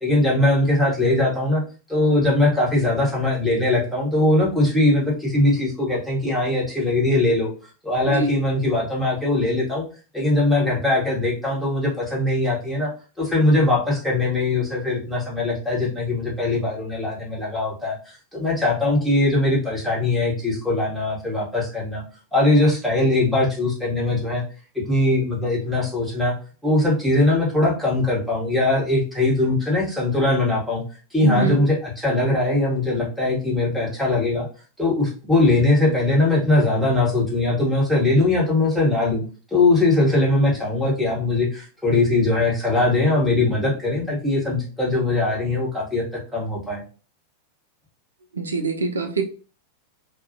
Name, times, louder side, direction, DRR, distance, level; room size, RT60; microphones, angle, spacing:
voice 1, 0.0-1.6 1.9-7.5 7.8-9.8 10.1-12.9 13.2-18.0 18.3-22.0 22.3-24.4 24.7-26.3 26.6-30.8 31.1-34.5 34.8-39.2 39.5-46.8, left 2 dB, ahead, -5 dB, 1.0 m, -21 dB
voice 2, 31.2-31.6 48.3-49.2, right 2 dB, 75° right, 4 dB, 0.3 m, -23 dB
2.3 x 2.0 x 2.6 m, 0.36 s
figure-of-eight pair, 90°, 0 cm